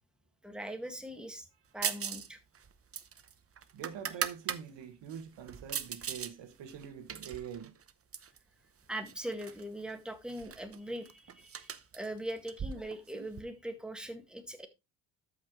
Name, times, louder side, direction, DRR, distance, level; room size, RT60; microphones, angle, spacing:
voice 1, 0.4-1.5 1.7-2.4 8.9-14.7, right 1 dB, ahead, 1.8 m, -41 dB
sound 1, 1.8-2.3 2.6-4.6 5.1-6.3 6.7-8.4 9.1-9.6 9.9-10.0 10.3-13.4, right 7 dB, 30° right, 0.8 m, -39 dB
voice 2, 3.7-7.7, right 8 dB, 80° right, 1.7 m, -44 dB
13.0 x 5.8 x 3.1 m
cardioid pair, 105°, 43 cm